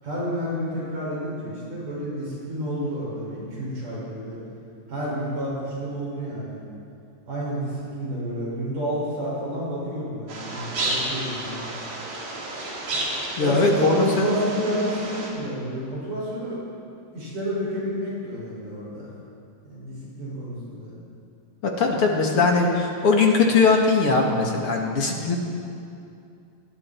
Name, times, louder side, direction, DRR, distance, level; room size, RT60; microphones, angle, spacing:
voice 1, 0.0-4.4 4.9-6.6 7.3-11.7 13.4-16.6 17.1-19.1 19.7-20.9, equal, 65° right, -7 dB, 7.7 m, -30 dB
sound 1, 10.3-15.3, right 2 dB, 85° right, 5.4 m, -31 dB
voice 2, 13.0-14.3 21.6-25.4, left 4 dB, 45° left, 0 dB, 2.3 m, -20 dB
27.5 x 20.5 x 4.5 m, 2.6 s
omnidirectional pair, 4.0 m